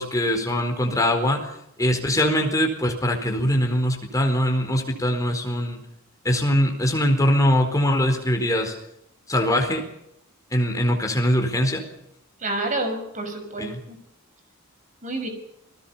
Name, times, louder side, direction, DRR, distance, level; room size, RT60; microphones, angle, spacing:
voice 1, 0.0-1.5 1.8-5.8 6.2-8.7 9.3-9.8 10.5-11.8 13.6-13.8, equal, 15° left, 3 dB, 4.3 m, -22 dB
voice 2, 12.4-14.0 15.0-15.3, right 2 dB, 35° right, 6 dB, 5.9 m, -29 dB
29.5 x 20.5 x 5.7 m, 0.79 s
head